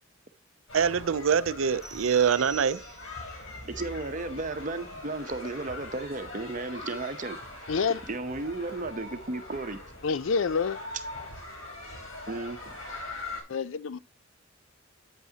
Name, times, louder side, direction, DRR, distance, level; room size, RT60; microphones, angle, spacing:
sound 1, 0.7-13.4, left 2 dB, 90° left, 3.7 m, -42 dB
voice 1, 0.7-2.8, right 7 dB, 85° right, 0.5 m, -24 dB
sound 2, 1.8-3.4, right 5 dB, ahead, 1.1 m, -46 dB
voice 2, 3.6-7.4 8.1-9.8 12.3-12.8, right 2 dB, 40° right, 0.9 m, -34 dB
voice 3, 7.7-8.0 10.0-10.8 13.5-14.0, left 5 dB, 70° left, 0.5 m, -27 dB
8.9 x 8.3 x 2.8 m
head